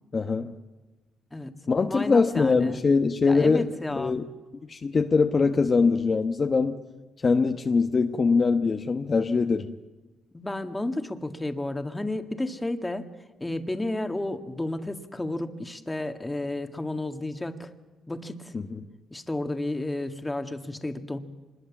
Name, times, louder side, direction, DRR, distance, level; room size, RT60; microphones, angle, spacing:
voice 1, 0.1-0.5 1.7-4.3 4.7-6.8 7.2-9.7 18.5-18.8, left 4 dB, 35° left, 5 dB, 1.1 m, -23 dB
voice 2, 1.9-2.8 3.3-4.1 10.3-13.1 13.4-17.7 18.1-18.5 19.1-21.2, left 2 dB, 15° left, 7 dB, 1.9 m, -32 dB
25.0 x 21.0 x 7.3 m, 1.2 s
cardioid pair, 90°, 0 cm